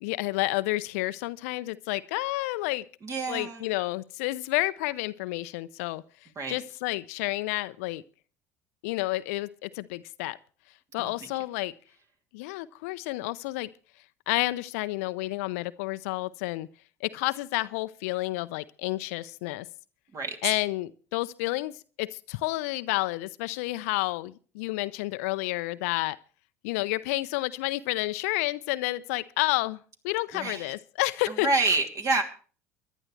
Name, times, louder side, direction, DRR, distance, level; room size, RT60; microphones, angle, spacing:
voice 1, 0.0-2.8 3.3-6.0 6.5-8.0 8.8-10.4 10.9-11.7 12.3-13.7 14.3-16.7 17.0-19.7 20.4-26.2 26.6-31.5, left 20 dB, 65° left, 15 dB, 0.6 m, -30 dB
voice 2, 3.0-3.7 6.3-6.6 11.0-11.1 20.1-20.6 30.3-30.7 31.3-32.2, right 3 dB, 40° right, 3 dB, 2.8 m, -28 dB
23.5 x 11.0 x 3.3 m, 0.40 s
figure-of-eight pair, 65°, 8 cm